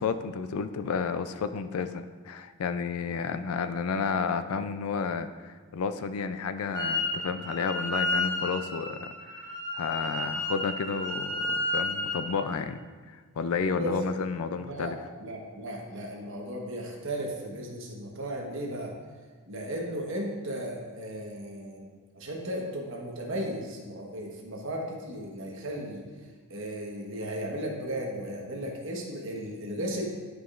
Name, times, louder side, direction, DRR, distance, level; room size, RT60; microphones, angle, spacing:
voice 1, 0.0-12.8 13.1-15.0, left 5 dB, 75° left, 11 dB, 0.4 m, -31 dB
Wind instrument woodwind instrument, 6.7-7.1 7.4-12.2, left 2 dB, 15° left, 1.9 m, -31 dB
voice 2, 14.5-14.9 15.2-18.9 19.5-21.9 22.1-26.1 26.5-30.1, equal, 60° right, -1 dB, 1.2 m, -35 dB
11.0 x 4.9 x 2.5 m, 1.5 s
head